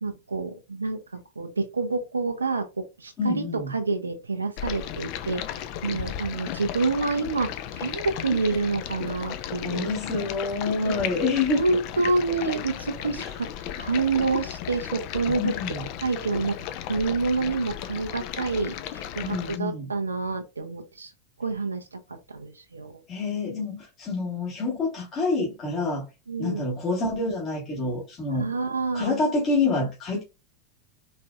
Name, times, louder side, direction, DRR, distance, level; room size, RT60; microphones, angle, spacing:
voice 1, 0.0-9.9 10.9-11.0 11.5-13.5 13.8-15.6 16.0-21.1 21.4-23.0 26.3-26.7 28.3-29.2, right 3 dB, 80° right, 0.5 m, -28 dB
voice 2, 3.2-3.7 9.6-11.6 13.2-13.3 15.4-15.8 19.2-19.9 23.1-26.0 26.4-28.5 28.9-30.2, left 3 dB, 35° left, 1.5 m, -27 dB
Stream, 4.6-19.6, left 11 dB, 50° left, 0.5 m, -35 dB
4.2 x 3.3 x 2.3 m
figure-of-eight pair, 85°, 0 cm